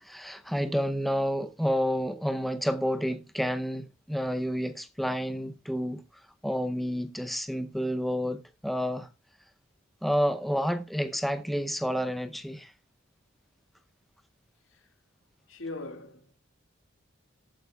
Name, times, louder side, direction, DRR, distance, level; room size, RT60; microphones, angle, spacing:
voice 1, 0.0-6.0 6.4-9.1 10.0-12.7, equal, ahead, 0.6 m, -29 dB
voice 2, 15.5-16.3, left 2 dB, 85° left, 2.1 m, -39 dB
18.5 x 9.1 x 2.3 m
head